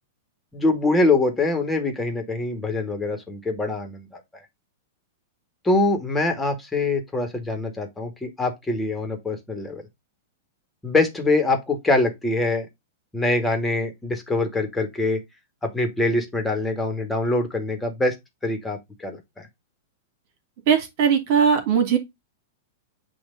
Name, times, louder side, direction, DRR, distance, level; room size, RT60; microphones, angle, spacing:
voice 1, 0.5-4.4 5.6-9.8 10.8-12.7 13.1-15.2 15.6-18.1 18.4-19.5, left 2 dB, 10° left, 1.9 m, -24 dB
voice 2, 20.7-22.0, right 7 dB, 50° right, 2.5 m, -19 dB
8.7 x 3.0 x 3.9 m
hypercardioid pair, 105°, 0 cm